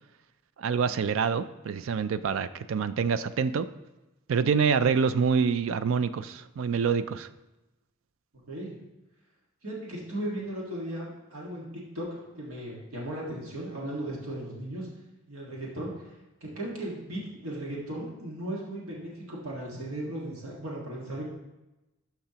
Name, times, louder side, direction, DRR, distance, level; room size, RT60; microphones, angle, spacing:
voice 1, 0.6-3.7 4.3-7.3, right 6 dB, 70° right, 13 dB, 0.4 m, -26 dB
voice 2, 8.5-8.8 9.6-14.9 15.3-21.2, right 1 dB, 90° right, -3 dB, 1.7 m, -36 dB
12.0 x 5.8 x 2.9 m, 1.0 s
head